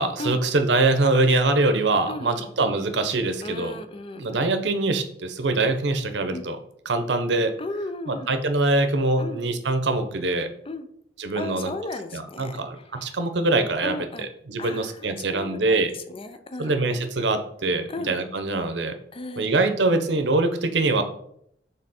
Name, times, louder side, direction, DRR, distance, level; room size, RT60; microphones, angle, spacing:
voice 1, 0.0-3.8 4.1-6.6 6.8-7.5 8.1-10.5 11.2-11.7 12.1-15.9 16.6-18.9 19.4-21.0, right 2 dB, 85° right, 8 dB, 0.8 m, -23 dB
voice 2, 2.1-2.5 3.4-4.5 6.3-6.5 7.6-8.4 9.2-9.4 10.7-10.9 11.3-12.6 13.8-14.3 14.6-15.8 16.1-16.9 17.9-18.1 19.1-19.5, left 2 dB, 30° left, 9 dB, 0.5 m, -35 dB
6.6 x 3.5 x 4.2 m, 0.70 s
head